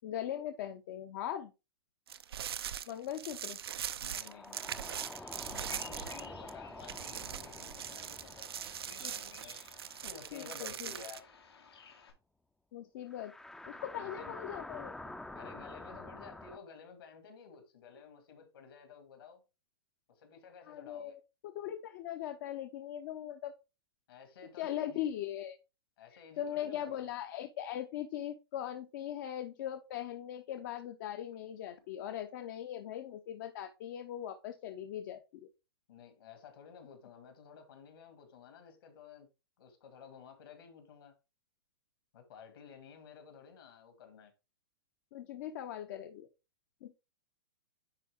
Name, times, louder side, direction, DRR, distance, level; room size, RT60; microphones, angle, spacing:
voice 1, 0.0-1.5 2.9-3.6 9.0-9.1 10.3-10.9 12.7-13.3 13.7-15.1 20.7-23.5 24.6-25.6 26.4-35.5 45.1-46.3 46.8-46.9, left 11 dB, 50° left, 0.7 m, -40 dB
sound 1, 2.1-6.5 6.8-11.2, right 9 dB, 80° right, 0.5 m, -41 dB
voice 2, 4.0-4.7 5.4-9.6 10.0-11.3 14.0-14.3 15.3-19.4 20.1-21.2 24.1-25.1 26.0-27.2 35.9-39.3 39.6-41.1 42.1-44.3, left 6 dB, 70° left, 2.3 m, -53 dB
sound 2, 4.1-10.7 11.0-11.1 13.1-16.6, left 2 dB, 5° left, 0.5 m, -48 dB
Bird vocalization bird call bird song, 4.7-12.1, left 5 dB, 85° left, 1.7 m, -56 dB
10.0 x 3.6 x 3.5 m
hypercardioid pair, 120°, 13 cm